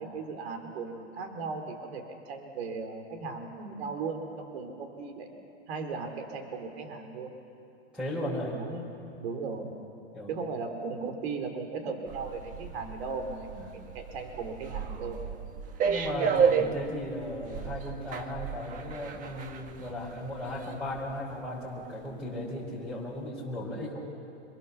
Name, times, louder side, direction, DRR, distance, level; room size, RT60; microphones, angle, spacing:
voice 1, 0.0-5.3 5.7-7.3 8.5-9.7 10.3-15.2, right 4 dB, 60° right, 5 dB, 3.8 m, -37 dB
voice 2, 7.9-8.6 10.1-10.3 13.7-13.8 15.9-24.0, left 1 dB, 5° right, -7 dB, 5.7 m, -36 dB
sound 1, 12.1-21.1 21.5-21.6, right 6 dB, 20° right, 1.3 m, -32 dB
26.0 x 23.5 x 7.2 m, 2.7 s
hypercardioid pair, 145°, 35 cm